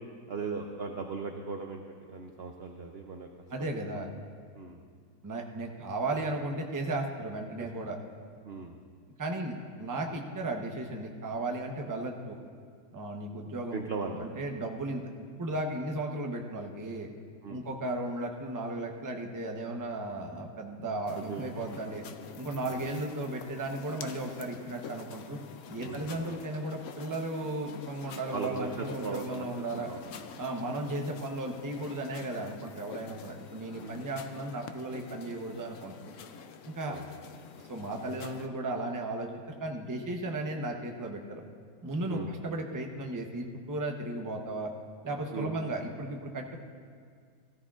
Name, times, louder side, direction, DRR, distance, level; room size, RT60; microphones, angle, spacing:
voice 1, 0.3-3.3 3.6-3.7 4.6-4.8 7.6-7.7 8.4-8.8 13.7-14.2 17.4-17.6 21.1-21.8 22.7-22.8 25.8-26.2 28.3-30.0 33.8-34.0 36.9-37.0 42.1-42.3 45.3-45.5, right 4 dB, 65° right, 3 dB, 0.6 m, -38 dB
voice 2, 3.5-4.1 5.2-8.0 9.2-12.4 12.9-13.9 14.2-15.0 15.4-17.1 17.5-22.0 22.4-25.4 25.7-29.9 30.4-35.9 36.7-37.0 37.7-39.3 39.6-41.4 41.8-44.7 45.0-46.6, right 2 dB, 20° right, 2 dB, 0.5 m, -35 dB
sound 1, 21.1-38.5, left 6 dB, 65° left, 0.8 m, -47 dB
16.5 x 14.5 x 2.5 m, 2.1 s
omnidirectional pair, 1.8 m